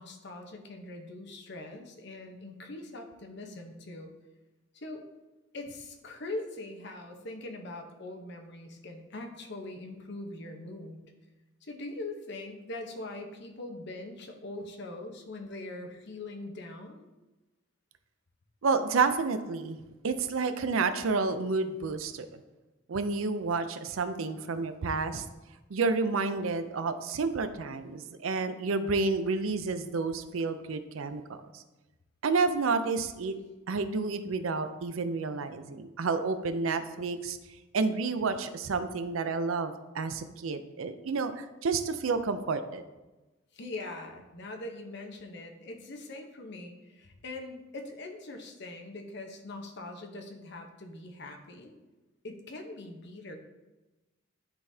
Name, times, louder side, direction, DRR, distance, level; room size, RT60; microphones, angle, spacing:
voice 1, 0.0-4.1 4.7-5.0 5.5-11.0 11.6-17.0 43.5-51.7 52.2-53.4, left 2 dB, 55° left, 4 dB, 0.9 m, -42 dB
voice 2, 18.6-19.8 20.0-22.4 22.9-25.2 25.7-31.6 32.2-33.4 33.7-37.4 37.7-42.8, right 4 dB, 80° right, 10 dB, 0.5 m, -30 dB
11.5 x 3.9 x 2.8 m, 1.1 s
head